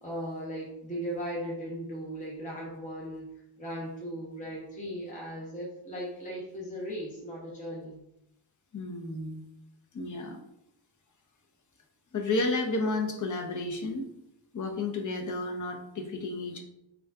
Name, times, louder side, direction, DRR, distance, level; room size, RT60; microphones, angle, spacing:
voice 1, 0.0-3.3 3.6-8.0, equal, 15° left, -5 dB, 1.1 m, -37 dB
voice 2, 8.7-9.4 9.9-10.4 12.1-14.1 14.5-16.6, left 2 dB, 40° left, 3 dB, 0.8 m, -32 dB
3.7 x 2.5 x 4.6 m, 0.85 s
cardioid pair, 100°, 47 cm